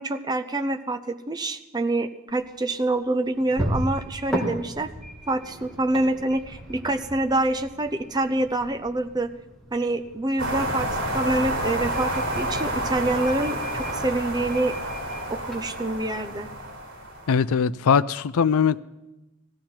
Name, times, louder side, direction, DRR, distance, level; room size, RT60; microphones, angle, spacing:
voice 1, 0.0-4.9 5.3-9.3 9.7-10.9 11.1-14.7 15.3-16.5, right 2 dB, 20° right, 7 dB, 0.6 m, -26 dB
sound 1, 2.3-16.7, equal, 5° left, 2.0 m, -37 dB
sound 2, 10.4-17.3, right 1 dB, 55° right, 4.5 m, -29 dB
voice 2, 17.3-18.8, left 6 dB, 85° left, 17 dB, 0.4 m, -21 dB
17.0 x 14.5 x 4.4 m, 1.0 s
head